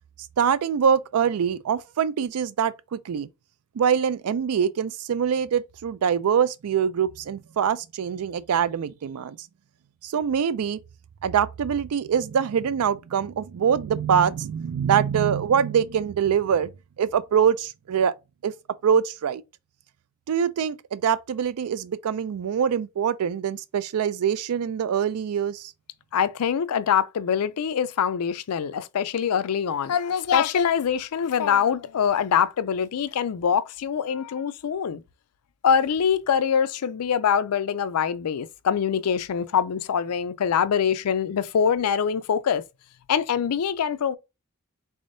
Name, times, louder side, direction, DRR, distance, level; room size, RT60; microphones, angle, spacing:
voice 1, 0.4-3.3 3.8-9.4 10.0-10.8 11.2-16.7 17.0-18.1 18.4-18.5 18.8-19.4 20.3-25.7, right 7 dB, 80° right, 0.4 m, -24 dB
voice 2, 26.1-35.0 35.6-42.6 43.1-44.2, left 7 dB, 85° left, 0.4 m, -24 dB
3.5 x 3.5 x 2.6 m
head